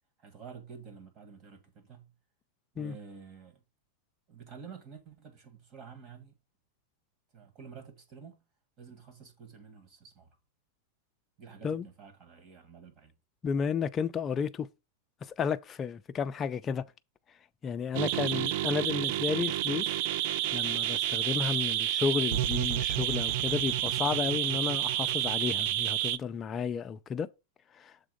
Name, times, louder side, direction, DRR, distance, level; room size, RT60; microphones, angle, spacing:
voice 1, 0.2-2.1 2.7-3.6 4.3-6.3 7.3-8.4 8.8-10.4 11.4-13.1, right 6 dB, 30° right, 1.7 m, -50 dB
voice 2, 13.4-14.7 15.2-16.8 17.6-19.9 20.5-27.3 27.8-27.9, left 6 dB, 20° left, 0.4 m, -32 dB
sound 1, 17.9-26.2, right 12 dB, 50° right, 0.4 m, -30 dB
7.0 x 3.7 x 5.1 m
supercardioid pair, 155°, 0 cm